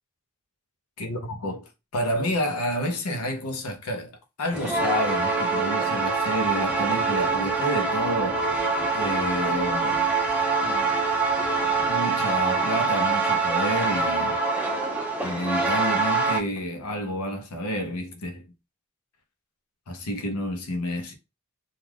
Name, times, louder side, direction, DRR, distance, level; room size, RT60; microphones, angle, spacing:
voice 1, 1.0-4.1 4.4-8.4 8.9-10.1 10.6-11.0 11.6-14.4 15.2-18.4 19.9-21.1, equal, 90° left, 0.7 m, -30 dB
sound 1, 4.5-16.4, right 4 dB, 5° right, 0.4 m, -24 dB
2.3 x 2.3 x 3.3 m
head